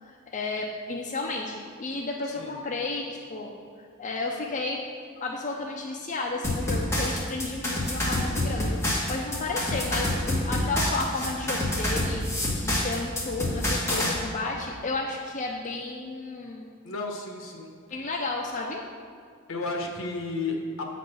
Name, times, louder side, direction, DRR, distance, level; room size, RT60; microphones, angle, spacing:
voice 1, 0.0-3.5 4.0-4.8 5.1-8.8 9.1-12.3 12.6-16.7 17.9-18.8, left 3 dB, 35° left, -1 dB, 0.6 m, -32 dB
voice 2, 2.2-2.6 16.8-17.7 19.5-20.9, left 3 dB, 70° left, 2 dB, 1.1 m, -32 dB
sound 1, 6.4-14.1, left 1 dB, 15° left, 1.5 m, -27 dB
7.6 x 4.2 x 6.3 m, 2.2 s
head